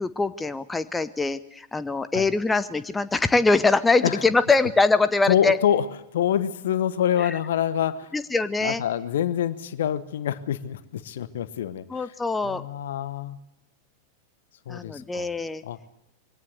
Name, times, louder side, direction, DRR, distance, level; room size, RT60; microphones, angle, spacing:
voice 1, 0.0-5.6 7.2-7.3 8.1-8.8 11.9-12.6 14.7-15.6, left 3 dB, 10° left, 14 dB, 0.8 m, -23 dB
voice 2, 5.3-5.9 6.1-8.1 8.6-12.1 12.4-13.4 14.7-15.3 15.6-15.8, left 10 dB, 60° left, 16 dB, 1.0 m, -26 dB
23.0 x 17.5 x 7.9 m, 0.87 s
figure-of-eight pair, 90°, 0 cm